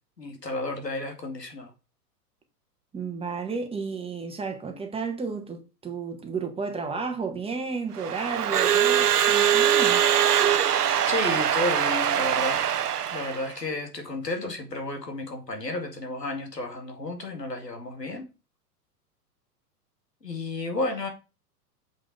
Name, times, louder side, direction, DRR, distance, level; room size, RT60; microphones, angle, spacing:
voice 1, 0.2-1.7 11.1-12.6 13.1-18.3 20.2-21.1, left 2 dB, 85° left, 2.4 m, -32 dB
voice 2, 2.9-10.0, right 4 dB, 10° right, 1.6 m, -32 dB
Crowd / Alarm, 8.0-13.5, right 9 dB, 70° right, 0.9 m, -22 dB
7.3 x 5.9 x 5.0 m
figure-of-eight pair, 100°, 48 cm